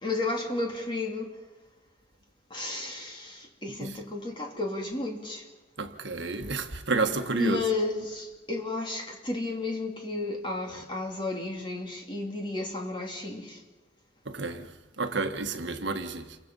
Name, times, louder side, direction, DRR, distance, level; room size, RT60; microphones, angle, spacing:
voice 1, 0.0-1.3 2.5-5.4 7.4-13.6, left 2 dB, 25° left, 3.0 m, -32 dB
voice 2, 5.8-7.6 14.2-16.4, right 3 dB, 65° right, 1.5 m, -31 dB
28.5 x 24.0 x 5.5 m
head